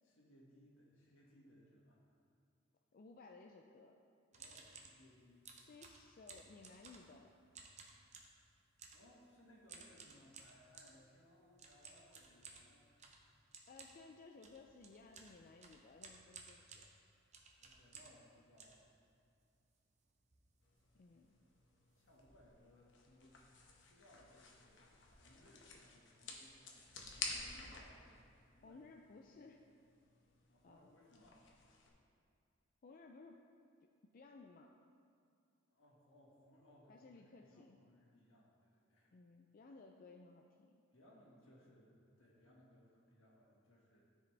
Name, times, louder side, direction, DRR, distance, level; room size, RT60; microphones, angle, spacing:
voice 1, 0.0-2.0 4.3-5.6 8.9-13.2 17.6-18.8 22.0-23.4 23.8-28.8 30.5-31.4 35.7-39.1 40.9-44.0, left 1 dB, 80° left, -3 dB, 1.6 m, -66 dB
voice 2, 2.9-4.0 5.6-7.3 13.7-16.9 20.9-21.3 28.6-29.7 30.6-30.9 32.8-33.5 33.8-34.7 36.9-37.8 39.1-40.8, left 3 dB, 45° left, 2 dB, 0.3 m, -59 dB
sound 1, 4.3-5.0 5.5-7.2 7.5-8.4 8.8-9.1 9.7-11.0 11.6-18.3 18.6-19.4 19.9-20.0 20.2-20.5 20.7-20.9 21.5-21.6 21.9-22.2, right 5 dB, 35° right, 0.7 m, -57 dB
sound 2, 20.6-31.9, left 4 dB, 65° left, 0.9 m, -52 dB
13.0 x 4.9 x 3.3 m, 2.4 s
head